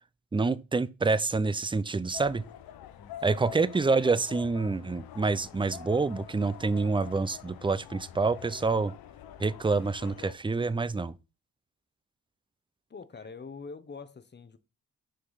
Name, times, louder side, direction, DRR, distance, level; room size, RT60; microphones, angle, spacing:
voice 1, 0.3-2.4 3.2-8.9 9.4-11.1, right 3 dB, 15° right, 0.5 m, -27 dB
sound 1, 2.1-10.3, left 9 dB, 75° left, 0.7 m, -46 dB
voice 2, 3.0-3.7 12.9-14.6, left 4 dB, 30° left, 0.9 m, -45 dB
6.5 x 4.5 x 4.0 m
cardioid pair, 65°, 37 cm